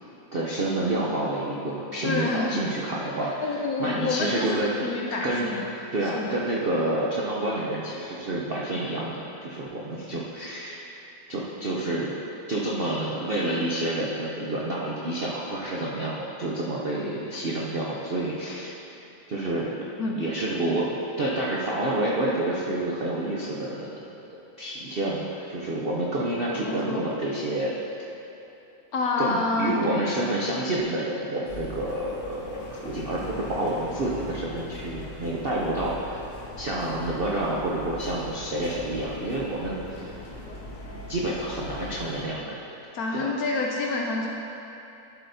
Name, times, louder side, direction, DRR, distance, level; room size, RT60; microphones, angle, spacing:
voice 1, 0.3-3.3 3.8-4.8 5.2-5.5 5.9-10.8 11.3-12.2 12.5-18.8 19.3-19.9 20.1-24.0 24.6-27.8 29.2-36.2 36.6-40.1 41.1-42.5 43.2-43.3, right 1 dB, 75° right, -4 dB, 0.5 m, -28 dB
voice 2, 2.0-2.7 3.2-5.7 6.0-6.4 20.0-20.2 26.5-27.1 28.9-30.1 42.9-44.3, left 3 dB, 70° left, -1 dB, 0.9 m, -28 dB
sound 1, 31.4-42.2, left 1 dB, 90° left, 1.9 m, -40 dB
11.5 x 7.6 x 2.7 m, 3.0 s
omnidirectional pair, 2.1 m